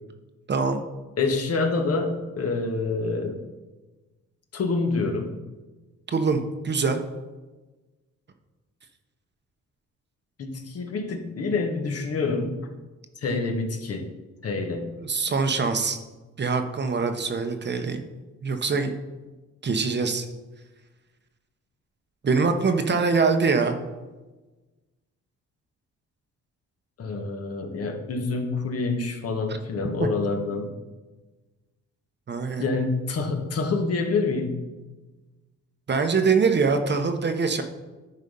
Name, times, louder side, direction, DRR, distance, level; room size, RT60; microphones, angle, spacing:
voice 1, 0.5-0.8 6.1-7.0 15.0-16.0 16.4-18.0 18.4-18.9 19.6-20.3 22.2-23.8 30.0-30.1 32.3-32.6 35.9-37.6, right 4 dB, 35° right, 6 dB, 0.9 m, -23 dB
voice 2, 1.2-3.4 4.5-5.3 10.4-12.6 13.2-14.1 14.4-14.9 27.0-30.7 32.6-34.6, left 3 dB, 50° left, 4 dB, 1.5 m, -27 dB
10.5 x 4.1 x 5.4 m, 1.2 s
cardioid pair, 90°, 30 cm